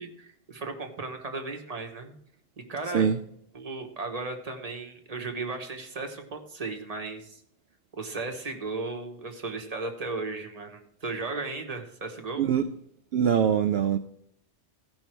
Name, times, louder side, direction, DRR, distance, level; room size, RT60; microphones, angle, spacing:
voice 1, 0.0-2.1 2.7-3.1 3.5-7.4 7.9-12.4, right 3 dB, 35° right, 1.4 m, -35 dB
voice 2, 13.1-14.0, right 8 dB, 65° right, 0.7 m, -23 dB
15.5 x 5.6 x 4.5 m
omnidirectional pair, 1.2 m